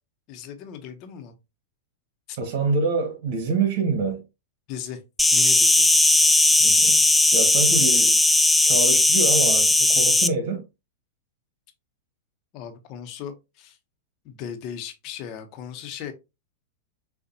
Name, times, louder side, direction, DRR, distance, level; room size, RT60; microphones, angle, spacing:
voice 1, 0.3-1.3 2.3-2.4 4.7-5.0 5.3-5.9 12.5-13.8 14.2-16.1, left 8 dB, 45° left, 1.0 m, -37 dB
voice 2, 2.4-4.2 6.6-7.0 7.3-8.2 8.6-10.6, right 4 dB, 55° right, 1.8 m, -26 dB
Insect, 5.2-10.3, left 2 dB, 5° left, 0.4 m, -18 dB
6.6 x 2.5 x 2.8 m
hypercardioid pair, 115°, 0 cm